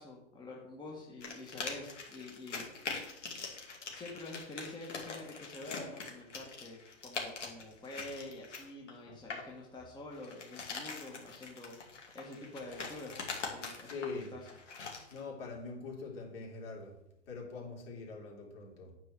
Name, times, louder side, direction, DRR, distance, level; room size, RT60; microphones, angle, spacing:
voice 1, 0.0-2.6 3.9-11.8 12.1-14.4, left 2 dB, 10° left, -2 dB, 1.6 m, -47 dB
sound 1, 1.2-9.5 10.1-15.2, left 4 dB, 80° left, 2.6 m, -43 dB
voice 2, 13.8-14.4 15.1-17.0 17.3-18.9, left 4 dB, 50° left, -1 dB, 3.6 m, -43 dB
9.1 x 4.7 x 7.4 m, 0.84 s
hypercardioid pair, 120°, 36 cm